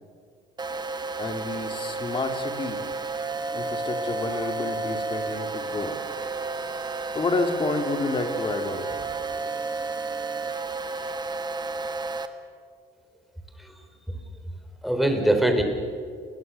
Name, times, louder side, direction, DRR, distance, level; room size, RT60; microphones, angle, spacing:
sound 1, 0.6-12.3, right 3 dB, 25° right, 1.7 m, -31 dB
voice 1, 1.2-2.8 3.5-6.0 7.1-8.9, left 3 dB, 30° left, 5 dB, 2.8 m, -29 dB
voice 2, 13.6-14.2 14.8-15.6, right 1 dB, ahead, 4 dB, 3.9 m, -23 dB
29.5 x 21.0 x 7.0 m, 2.3 s
cardioid pair, 110°, 17 cm